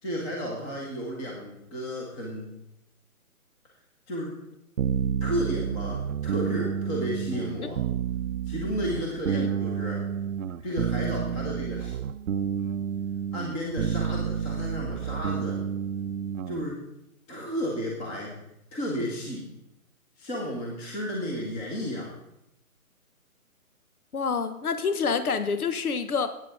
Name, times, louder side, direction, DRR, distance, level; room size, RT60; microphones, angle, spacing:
voice 1, 0.0-2.5 4.1-4.3 5.2-7.8 8.5-10.0 10.6-11.9 13.3-15.6 16.5-16.8 17.3-18.3 18.7-19.5 20.2-22.1, equal, 15° left, -3 dB, 1.2 m, -33 dB
sound 1, 4.8-16.6, right 8 dB, 65° right, 0.6 m, -30 dB
voice 2, 24.1-26.3, left 5 dB, 75° left, 10 dB, 1.1 m, -27 dB
13.5 x 9.0 x 3.7 m, 0.84 s
hypercardioid pair, 150°, 45 cm